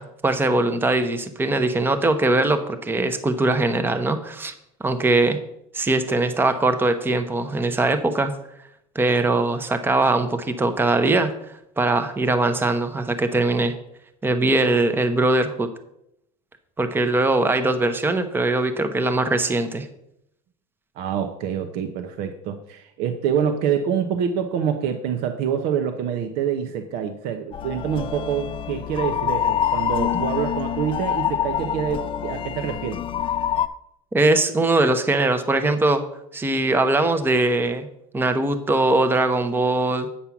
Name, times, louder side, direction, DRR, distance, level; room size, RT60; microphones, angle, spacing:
voice 1, 0.0-4.5 4.8-5.4 5.7-8.3 8.9-13.7 14.2-15.7 16.8-19.9 34.1-36.0 36.3-37.9 38.1-40.1, right 2 dB, 10° right, 8 dB, 0.8 m, -21 dB
voice 2, 21.0-33.0, right 8 dB, 65° right, 6 dB, 0.9 m, -26 dB
sound 1, 27.5-33.7, left 9 dB, 30° left, 0.5 m, -26 dB
8.6 x 5.5 x 5.9 m, 0.78 s
supercardioid pair, 115°, 17 cm